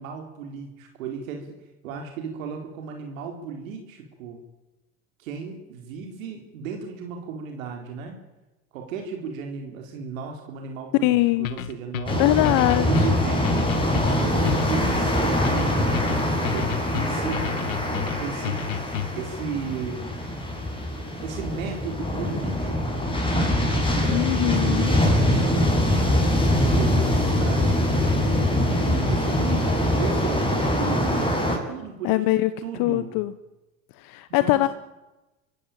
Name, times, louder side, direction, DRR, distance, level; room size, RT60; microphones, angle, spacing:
voice 1, 0.0-1.6 1.8-4.4 5.2-8.2 8.7-12.3 12.9-13.7 14.0-17.4 18.2-18.7 19.2-20.2 21.2-23.5 23.8-25.7 26.1-27.1 27.4-28.3 28.8-31.4 31.7-32.2 32.6-33.2 34.3-34.7, right 6 dB, 75° right, 3 dB, 3.9 m, -35 dB
voice 2, 11.0-11.5 12.2-13.1 24.1-24.9 32.0-32.5 32.8-33.3 34.0-34.7, left 18 dB, 55° left, 13 dB, 1.2 m, -22 dB
sound 1, 11.4-19.3, left 11 dB, 85° left, 1.1 m, -32 dB
sound 2, 12.1-31.6, left 1 dB, 15° left, 6.6 m, -23 dB
26.0 x 16.5 x 8.9 m, 1.0 s
hypercardioid pair, 80°, 40 cm